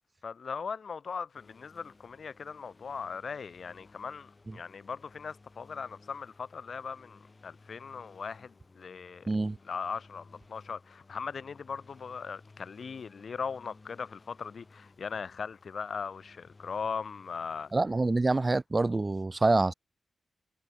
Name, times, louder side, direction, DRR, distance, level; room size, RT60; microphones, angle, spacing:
voice 1, 0.2-9.3 9.7-17.7, left 5 dB, 60° left, 0.8 m, -39 dB
sound 1, 1.3-17.8, left 3 dB, 30° left, 6.6 m, -58 dB
voice 2, 9.3-9.6 17.7-19.7, right 2 dB, 25° right, 0.9 m, -26 dB
wide cardioid pair, 160°, 0 cm